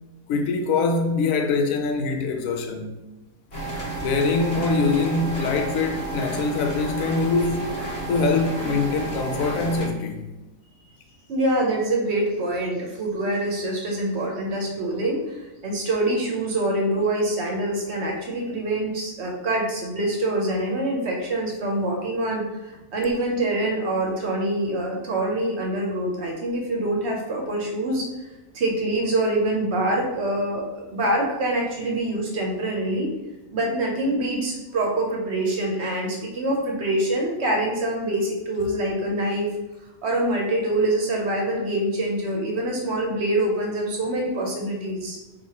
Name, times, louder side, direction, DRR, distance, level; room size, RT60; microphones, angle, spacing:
voice 1, 0.3-2.9 4.0-7.7 8.1-10.2, left 4 dB, 80° left, 1.0 m, -23 dB
sound 1, 3.5-9.9, right 2 dB, 50° left, 1.5 m, -31 dB
voice 2, 11.3-15.4 15.6-28.1 28.5-33.1 33.5-39.5 40.0-45.2, right 1 dB, 60° right, 0.9 m, -25 dB
4.7 x 2.6 x 2.8 m
omnidirectional pair, 1.4 m